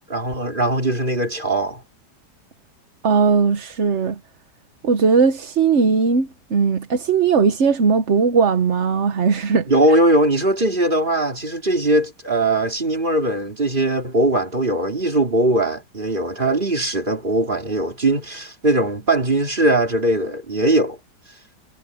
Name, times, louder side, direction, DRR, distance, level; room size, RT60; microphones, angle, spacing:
voice 1, 0.1-1.8 9.7-21.0, right 1 dB, 30° right, 3.3 m, -20 dB
voice 2, 3.0-4.2 4.8-9.7, right 5 dB, 45° right, 1.2 m, -18 dB
omnidirectional pair, 1.8 m